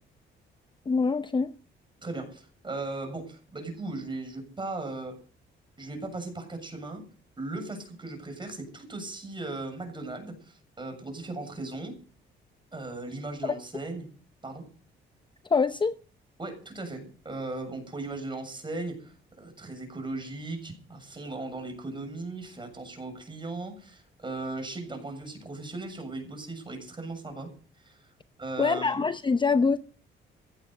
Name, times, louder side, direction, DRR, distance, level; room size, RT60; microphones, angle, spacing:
voice 1, 0.9-1.5 13.4-13.6 15.5-16.0 28.6-29.8, left 4 dB, 25° left, 0.7 m, -24 dB
voice 2, 2.0-5.2 5.8-7.0 7.4-11.9 12.7-14.1 14.4-14.6 16.4-27.5 27.8-28.1 28.4-29.1, right 2 dB, 25° right, 7.1 m, -37 dB
16.0 x 10.0 x 6.5 m
cardioid pair, 90°, 20 cm